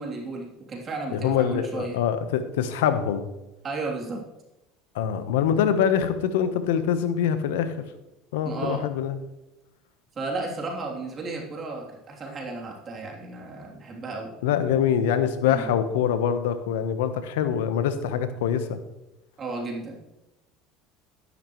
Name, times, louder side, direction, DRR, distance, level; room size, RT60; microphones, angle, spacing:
voice 1, 0.0-2.0 3.6-4.2 8.4-8.8 10.1-14.3 15.4-15.7 19.4-20.0, right 3 dB, 35° right, 0 dB, 3.3 m, -33 dB
voice 2, 1.1-3.3 4.9-7.7 8.3-9.2 14.4-18.8, left 8 dB, 85° left, 10 dB, 1.1 m, -24 dB
12.0 x 11.0 x 3.2 m, 0.96 s
supercardioid pair, 95°, 0 cm